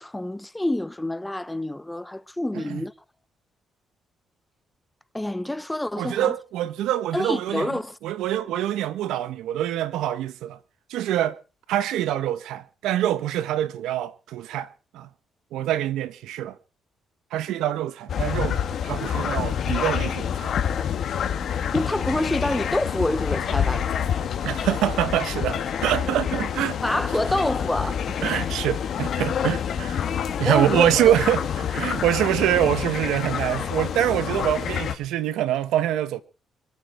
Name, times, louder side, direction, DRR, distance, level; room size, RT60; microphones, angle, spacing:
voice 1, 0.0-2.9 5.1-6.3 7.1-8.0 21.7-23.9 26.8-28.0 30.5-31.1, left 1 dB, 10° left, 0.8 m, -27 dB
voice 2, 6.0-10.6 10.9-11.4 11.7-15.1 15.5-16.6 17.3-18.6 18.8-20.5 24.4-26.8 28.2-30.0 30.4-36.2, right 12 dB, 90° right, 1.3 m, -25 dB
sound 1, 18.1-35.0, left 8 dB, 60° left, 2.3 m, -27 dB
25.5 x 8.9 x 4.5 m
cardioid pair, 90°, 0 cm